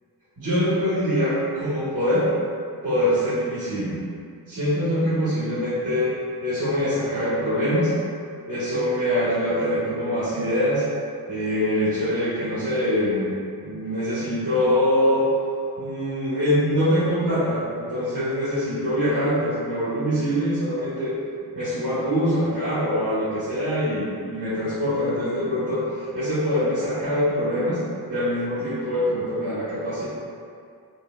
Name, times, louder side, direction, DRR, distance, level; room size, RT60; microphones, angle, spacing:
voice 1, 0.4-2.3 2.8-4.0 4.5-6.1 6.4-7.9 8.5-10.8 11.3-13.3 13.6-15.3 15.8-21.1 21.5-27.8 28.1-30.1, equal, 50° right, -13 dB, 1.2 m, -24 dB
4.3 x 2.2 x 2.2 m, 2.3 s
wide cardioid pair, 150°, 40 cm